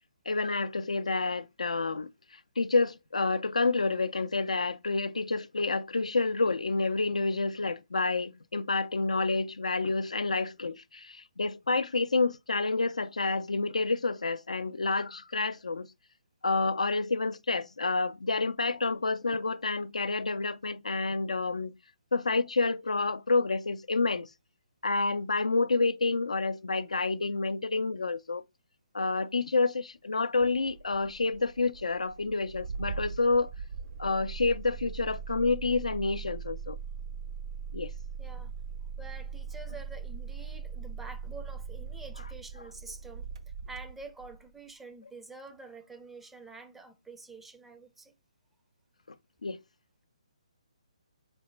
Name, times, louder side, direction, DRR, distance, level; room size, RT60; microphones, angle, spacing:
voice 1, 0.3-15.9 16.4-21.7 22.1-24.3 24.8-28.4 28.9-33.5 34.0-36.8 37.7-37.9 49.4-49.6, left 3 dB, 80° left, 0.3 m, -29 dB
Engine starting, 30.3-44.5, right 6 dB, 55° right, 0.5 m, -40 dB
voice 2, 38.2-38.5 39.0-43.3 43.7-48.1, right 3 dB, 5° right, 0.4 m, -47 dB
4.0 x 2.1 x 4.2 m
figure-of-eight pair, 140°, 4 cm